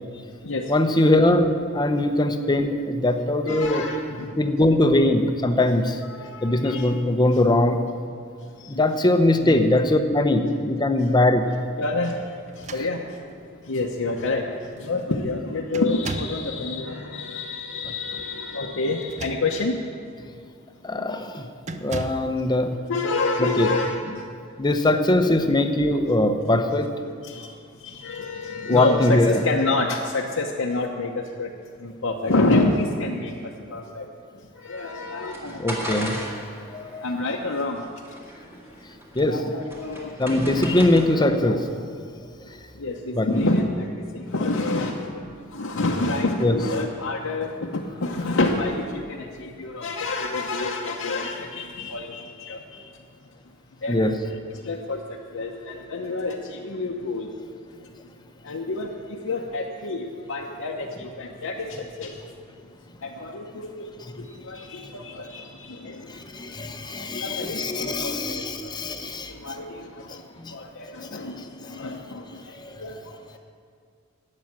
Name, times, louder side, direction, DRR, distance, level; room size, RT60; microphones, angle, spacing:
voice 1, 0.7-3.9 4.4-6.0 6.4-7.8 8.7-11.5 12.8-12.9 20.8-21.5 21.7-22.8 23.4-23.7 24.6-26.9 28.7-29.4 35.6-36.2 36.7-37.2 39.1-39.6 40.2-41.6 43.1-43.4 46.4-46.6 53.9-54.1 64.0-64.1 66.1-69.5 70.1-70.5 71.0-71.2 71.7-71.8 72.5-72.9, left 1 dB, 20° left, 7 dB, 0.8 m, -21 dB
voice 2, 3.4-4.4 6.1-6.9 8.4-8.8 9.4-9.7 11.8-19.9 22.9-24.3 26.4-26.6 27.0-31.5 31.8-34.1 34.5-35.6 37.0-37.8 39.3-40.1 41.1-41.6 42.7-52.9 53.8-54.1 54.5-57.3 58.4-62.2 63.0-73.4, left 2 dB, 70° left, -1 dB, 0.9 m, -28 dB
sound 1, 12.5-13.4 14.3-14.4 14.7-15.1 15.7-16.5 18.9-19.8 20.3-20.5 21.6-22.3, right 3 dB, 35° right, 0.6 m, -36 dB
sound 2, 34.7-41.4, equal, 10° right, 1.8 m, -37 dB
12.5 x 8.7 x 7.3 m, 2.2 s
head